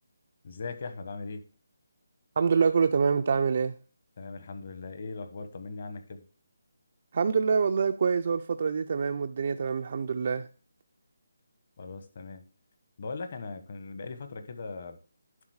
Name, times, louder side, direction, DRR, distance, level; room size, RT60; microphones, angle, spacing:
voice 1, 0.4-1.4 4.2-6.2 11.8-12.4 13.0-15.0, left 4 dB, 40° left, 1.2 m, -39 dB
voice 2, 2.4-3.8 7.1-10.5, right 5 dB, 40° right, 0.5 m, -26 dB
11.0 x 3.9 x 6.4 m
hypercardioid pair, 175°, 0 cm